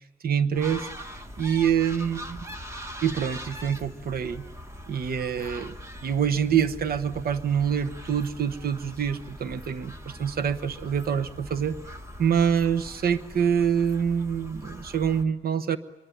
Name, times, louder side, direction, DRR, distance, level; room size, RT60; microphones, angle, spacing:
voice 1, 0.2-0.9 1.4-2.5 3.0-4.5 4.9-5.7 6.0-11.8 12.2-15.8, right 8 dB, 55° right, 10 dB, 1.0 m, -26 dB
sound 1, 0.5-15.2, equal, 15° right, 1.3 m, -42 dB
24.0 x 22.5 x 9.3 m, 1.1 s
wide cardioid pair, 165°, 18 cm